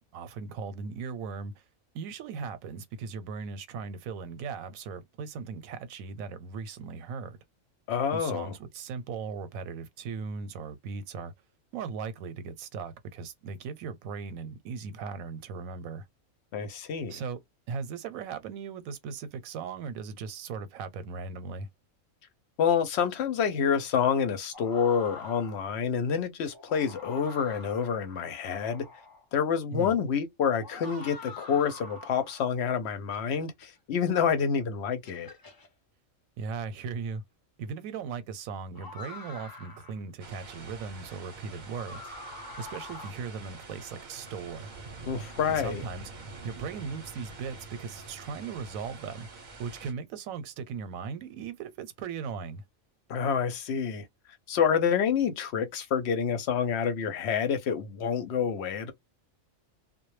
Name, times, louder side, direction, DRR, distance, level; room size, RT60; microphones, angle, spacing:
voice 1, 0.0-1.5 1.9-7.4 8.1-11.3 11.7-16.0 17.1-17.4 17.7-21.7 29.7-29.9 36.4-37.2 37.6-42.1 42.6-44.7 45.5-46.1 46.4-49.3 49.6-52.6, right 5 dB, 85° right, 1.0 m, -38 dB
voice 2, 7.9-8.6 16.5-17.2 22.6-28.9 29.3-35.3 45.1-45.8 53.1-54.1 54.5-58.9, left 7 dB, 65° left, 0.8 m, -28 dB
sound 1, 24.5-25.8 26.4-29.2 30.5-32.5 33.1-33.7 34.4-34.5 35.0-35.7 37.1-37.2 38.7-40.0 41.6-43.1, left 2 dB, 35° left, 0.3 m, -45 dB
sound 2, 40.2-49.9, right 3 dB, 45° right, 0.7 m, -46 dB
2.2 x 2.0 x 3.0 m
omnidirectional pair, 1.4 m